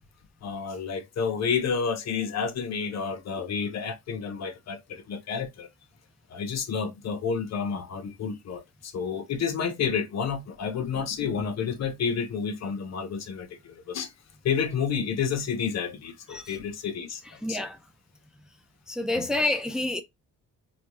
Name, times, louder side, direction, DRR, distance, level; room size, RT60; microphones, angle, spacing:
voice 1, 0.4-5.7 6.3-14.1 14.4-17.2 17.5-17.6 19.2-19.3, left 6 dB, 60° left, 0.9 m, -30 dB
voice 2, 17.4-17.8 18.9-20.0, left 2 dB, ahead, 0.5 m, -28 dB
4.3 x 2.3 x 3.0 m
cardioid pair, 90°, 30 cm